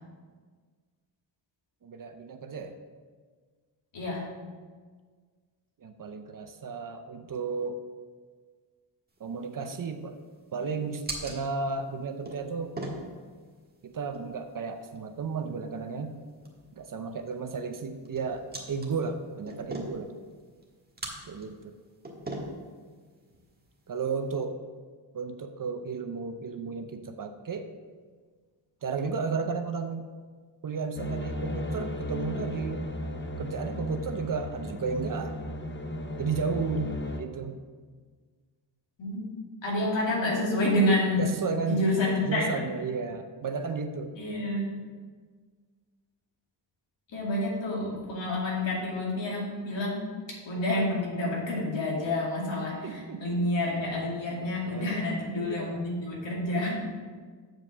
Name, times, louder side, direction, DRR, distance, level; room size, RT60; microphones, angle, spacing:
voice 1, 1.8-2.8 5.8-7.8 9.2-10.2 10.5-12.7 13.8-16.2 16.8-20.1 21.3-21.7 23.9-24.6 25.1-27.7 28.8-30.0 30.6-32.9 33.4-35.3 36.2-37.6 41.2-41.9 42.3-44.1 52.7-53.3 54.7-55.8, right 5 dB, 45° right, 7 dB, 0.6 m, -33 dB
voice 2, 3.9-4.3 39.0-39.3 39.6-41.2 41.7-42.5 44.2-44.7 47.1-50.1 50.4-56.8, left 1 dB, 85° left, -4 dB, 2.6 m, -28 dB
sound 1, 9.1-24.4, right 1 dB, 20° right, 1.5 m, -44 dB
sound 2, 31.0-37.2, left 1 dB, 25° left, 0.7 m, -35 dB
7.6 x 4.9 x 6.6 m, 1.6 s
wide cardioid pair, 115°, 44 cm